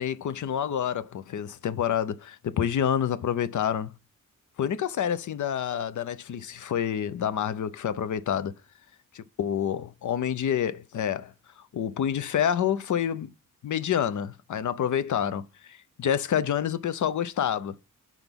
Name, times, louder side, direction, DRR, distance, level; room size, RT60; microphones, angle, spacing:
voice 1, 0.0-3.9 4.6-8.5 9.1-11.3 11.7-13.3 13.6-17.8, left 9 dB, 60° left, 0.6 m, -28 dB
6.0 x 3.9 x 5.2 m
cardioid pair, 75°, 35 cm